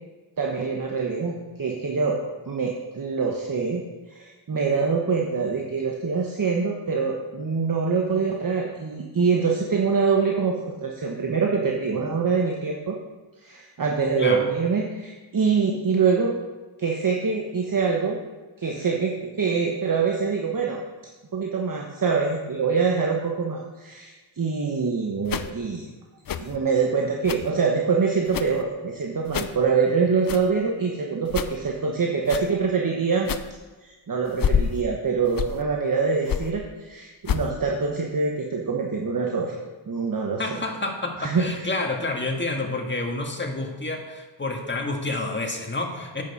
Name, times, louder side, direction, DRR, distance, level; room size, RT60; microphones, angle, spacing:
voice 1, 0.4-2.2 2.5-3.8 4.1-13.0 13.4-16.4 16.8-18.2 18.6-20.8 21.3-25.9 26.4-33.3 33.8-39.6 39.9-40.6 41.2-41.7, right 5 dB, 45° right, 1 dB, 1.1 m, -24 dB
voice 2, 14.2-14.5 40.4-46.2, left 2 dB, 25° left, 2 dB, 1.6 m, -29 dB
sound 1, 25.2-25.5 26.3-26.6 27.2-27.5 28.3-28.6 29.3-29.6 30.3-30.5 31.3-31.6 32.2-32.5 33.2-33.5 34.3-34.8 35.2-35.6 36.3-36.5 37.2-37.5, left 7 dB, 45° left, 0.6 m, -28 dB
9.1 x 6.8 x 5.5 m, 1.2 s
cardioid pair, 80°, 48 cm